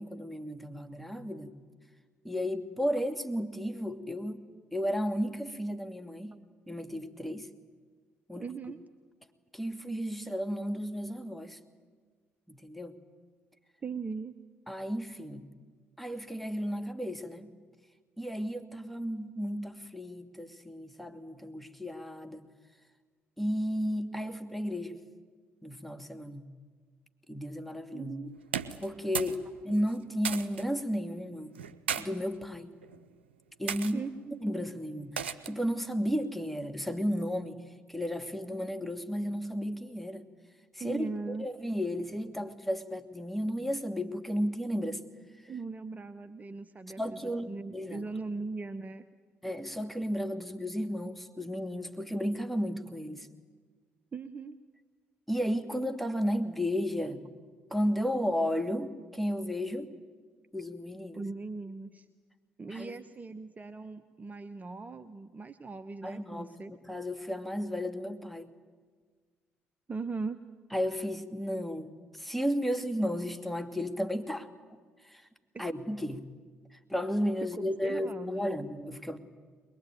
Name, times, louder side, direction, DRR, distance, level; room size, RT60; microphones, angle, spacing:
voice 1, 0.0-1.5 2.2-4.4 4.7-6.4 6.7-7.5 8.3-8.4 9.5-11.6 12.5-13.0 14.7-15.5 16.0-17.5 18.2-22.4 23.4-25.0 25.6-26.5 27.3-28.2 28.8-31.6 32.0-32.8 33.6-34.1 34.4-37.6 37.9-40.2 40.7-45.0 47.0-48.0 49.4-53.3 55.3-57.2 57.7-59.9 60.5-61.2 62.7-62.9 66.0-68.5 70.7-74.5 75.0-75.3 75.6-76.2 76.7-79.2, equal, ahead, 6 dB, 2.3 m, -33 dB
voice 2, 8.4-8.8 13.8-14.3 27.9-28.4 33.9-34.4 40.8-41.5 45.5-49.0 54.1-54.6 61.1-62.1 62.6-66.7 69.9-70.4 75.5-75.6 77.6-78.6, right 4 dB, 25° right, 10 dB, 1.0 m, -39 dB
sound 1, 28.4-29.4 29.7-30.6 31.5-32.0 32.8-33.1 33.7-33.9 35.2-35.6, right 7 dB, 85° right, 0.7 m, -35 dB
22.0 x 22.0 x 9.3 m, 1.5 s
figure-of-eight pair, 45°, 6 cm